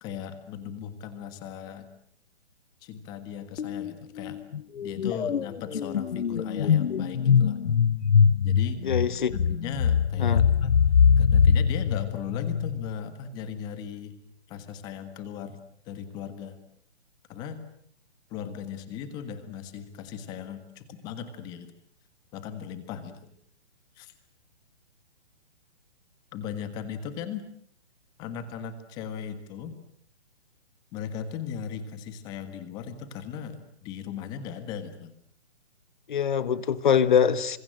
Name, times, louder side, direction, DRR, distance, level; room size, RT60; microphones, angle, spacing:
voice 1, 0.0-1.9 2.8-4.4 4.8-7.6 8.4-8.8 9.3-10.7 11.2-14.2 14.5-15.6 15.9-16.6 17.3-17.6 18.3-21.7 22.3-23.3 24.0-24.1 26.3-27.4 28.2-29.8 30.9-35.1, left 8 dB, 10° left, 11 dB, 1.5 m, -37 dB
sound 1, 3.6-3.9 4.2-13.0, left 7 dB, 80° left, 1.2 m, -23 dB
voice 2, 8.8-9.4 10.2-10.5 36.1-37.6, left 7 dB, 45° left, 15 dB, 1.7 m, -23 dB
28.5 x 26.0 x 7.7 m, 0.64 s
hypercardioid pair, 175°, 34 cm